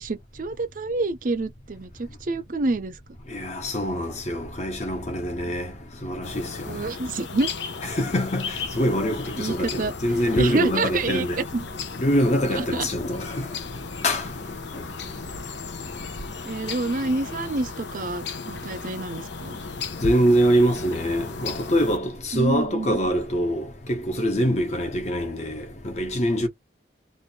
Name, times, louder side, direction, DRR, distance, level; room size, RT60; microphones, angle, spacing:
voice 1, 0.0-3.0 6.7-7.5 9.4-9.9 10.3-11.6 12.5-12.9 16.5-19.6 22.3-23.0, right 3 dB, 45° right, 0.5 m, -27 dB
voice 2, 3.3-5.7 6.0-6.5 7.8-11.4 12.0-13.4 14.0-14.2 20.0-26.5, equal, 35° left, 1.1 m, -24 dB
sound 1, 6.2-22.0, left 4 dB, 75° left, 0.8 m, -35 dB
3.1 x 2.6 x 4.3 m
head